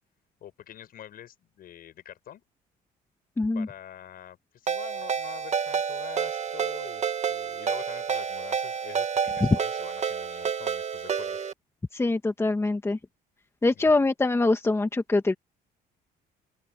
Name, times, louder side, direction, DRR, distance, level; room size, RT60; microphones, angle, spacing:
voice 1, 0.4-2.4 3.5-11.4 13.7-14.0, left 11 dB, 60° left, 7.2 m, -46 dB
voice 2, 3.4-3.7 9.4-9.6 11.9-13.0 13.6-15.3, left 2 dB, 15° left, 1.6 m, -23 dB
Ringtone, 4.7-11.5, right 7 dB, 40° right, 2.4 m, -29 dB
open air
cardioid pair, 110°, 17 cm